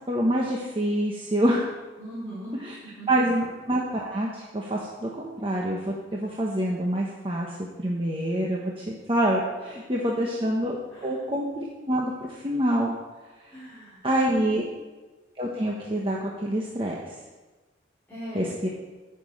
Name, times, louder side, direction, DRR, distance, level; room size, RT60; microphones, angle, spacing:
voice 1, 0.1-1.7 2.6-2.7 3.1-13.0 14.0-14.6 15.4-16.9 18.3-18.7, right 1 dB, 30° right, -2 dB, 1.3 m, -26 dB
voice 2, 2.0-2.6 2.8-3.1 9.6-10.3 10.9-11.2 13.5-14.0 14.3-14.7 18.1-18.5, right 1 dB, 10° left, -11 dB, 4.2 m, -41 dB
9.5 x 7.2 x 8.8 m, 1.2 s
head